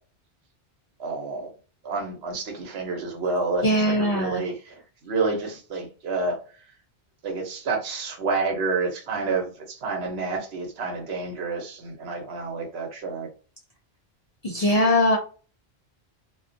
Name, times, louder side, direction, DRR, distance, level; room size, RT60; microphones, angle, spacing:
voice 1, 1.0-1.5 1.8-3.6 4.0-6.4 7.2-13.3, right 3 dB, 70° right, 0.9 m, -29 dB
voice 2, 3.6-4.4 14.4-15.2, left 1 dB, 55° left, 0.4 m, -21 dB
2.2 x 2.2 x 2.5 m
omnidirectional pair, 1.1 m